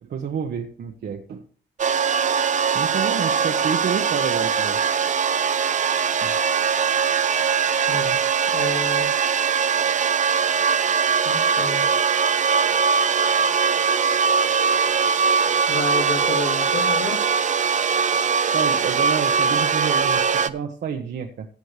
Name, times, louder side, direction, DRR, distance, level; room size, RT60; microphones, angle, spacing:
voice 1, 0.0-1.4 2.7-4.8 18.5-21.5, right 7 dB, 55° right, 2 dB, 1.2 m, -29 dB
sound 1, 1.8-20.5, right 6 dB, 40° right, 0.7 m, -21 dB
voice 2, 8.5-9.1 11.2-11.8 15.7-17.2, left 4 dB, 65° left, 1 dB, 2.2 m, -30 dB
15.0 x 8.3 x 3.3 m, 0.43 s
cardioid pair, 90°, 20 cm